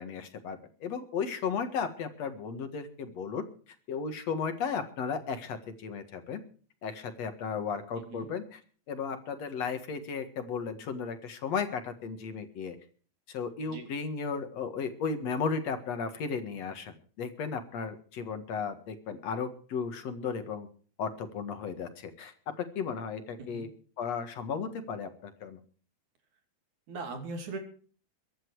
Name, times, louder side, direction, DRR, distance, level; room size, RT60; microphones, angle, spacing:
voice 1, 0.0-3.4 3.9-6.4 6.8-8.6 8.9-12.8 13.3-20.7 21.0-23.7 24.0-25.6, left 5 dB, 60° left, 8 dB, 2.8 m, -35 dB
voice 2, 26.9-27.6, right 3 dB, 75° right, 5 dB, 4.4 m, -39 dB
23.0 x 10.5 x 4.8 m, 0.42 s
omnidirectional pair, 3.4 m